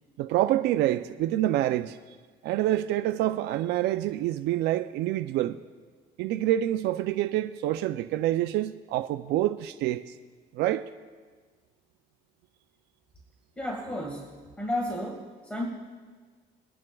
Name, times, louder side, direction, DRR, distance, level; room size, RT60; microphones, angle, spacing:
voice 1, 0.2-2.0 2.4-5.6 6.2-10.1 10.5-10.9, right 13 dB, 80° right, 0.4 m, -27 dB
voice 2, 13.6-14.3 14.6-15.7, left 1 dB, 5° left, 1.8 m, -32 dB
23.5 x 10.5 x 2.3 m
cardioid pair, 110°, 17 cm